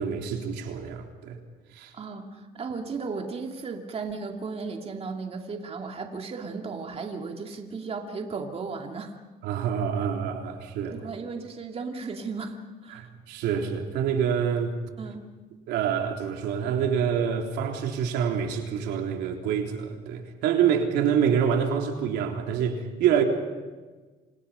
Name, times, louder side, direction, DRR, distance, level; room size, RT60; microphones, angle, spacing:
voice 1, 0.0-1.4 1.7-1.9 9.4-11.0 12.9-14.7 15.7-23.2, right 8 dB, 85° right, 3 dB, 3.7 m, -26 dB
voice 2, 1.9-9.2 10.9-13.0 15.0-15.3, right 4 dB, 35° right, 3 dB, 2.4 m, -35 dB
29.0 x 27.0 x 5.8 m, 1.3 s
cardioid pair, 110°, 17 cm